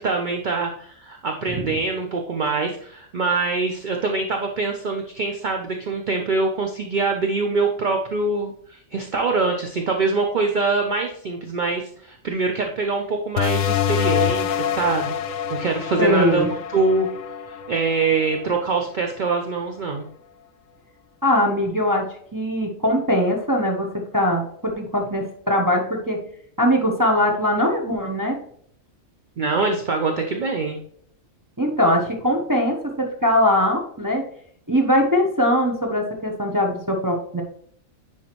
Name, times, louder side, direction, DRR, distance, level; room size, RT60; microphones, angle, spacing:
voice 1, 0.0-17.1 17.5-20.1 29.4-30.8, right 3 dB, 45° right, 3 dB, 0.7 m, -24 dB
sound 1, 13.4-18.6, left 9 dB, 75° left, 1.0 m, -26 dB
voice 2, 16.0-16.5 21.2-22.1 22.3-26.2 26.6-28.4 31.6-34.2 34.7-37.4, equal, 15° right, 0 dB, 0.9 m, -21 dB
10.0 x 4.3 x 3.0 m, 0.64 s
omnidirectional pair, 1.4 m